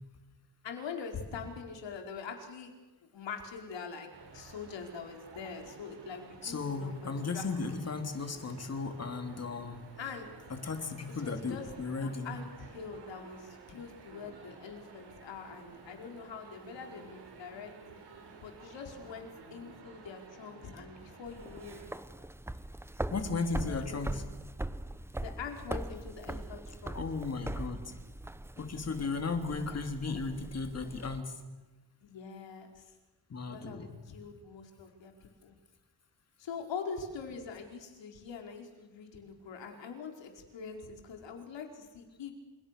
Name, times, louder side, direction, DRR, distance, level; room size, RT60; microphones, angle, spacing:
voice 1, 0.6-2.7 3.1-4.1 4.3-7.5 7.8-7.9 10.0-10.3 11.2-17.7 18.4-21.8 23.5-24.2 25.2-27.0 29.7-29.8 32.0-32.9 33.4-35.1 35.4-35.6 36.4-42.3, left 5 dB, 90° left, 3 dB, 4.9 m, -44 dB
sound 1, 4.1-21.9, right 4 dB, 70° right, 7.7 m, -53 dB
voice 2, 6.4-9.8 10.5-12.3 23.1-24.2 26.9-27.9 28.6-31.4 33.3-33.9, left 4 dB, 35° left, 6 dB, 3.3 m, -35 dB
sound 2, 21.3-31.2, right 1 dB, 5° right, 0.8 m, -41 dB
29.5 x 28.5 x 6.8 m, 1.2 s
wide cardioid pair, 155°, 43 cm